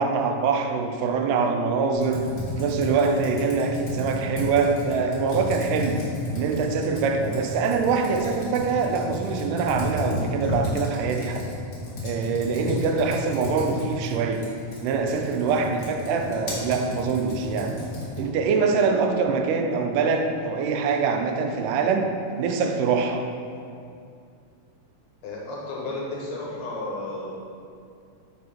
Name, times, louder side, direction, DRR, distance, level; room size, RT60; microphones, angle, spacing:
voice 1, 0.0-2.3 2.6-6.0 6.3-11.4 12.0-14.4 14.8-17.8 18.2-22.1 22.4-23.3, right 5 dB, 90° right, 5 dB, 2.1 m, -24 dB
Computer keyboard, 1.9-18.4, left 1 dB, 45° left, 1.5 m, -33 dB
voice 2, 25.2-27.4, left 2 dB, 70° left, -4 dB, 2.0 m, -33 dB
5.7 x 5.3 x 3.4 m, 2.4 s
omnidirectional pair, 3.6 m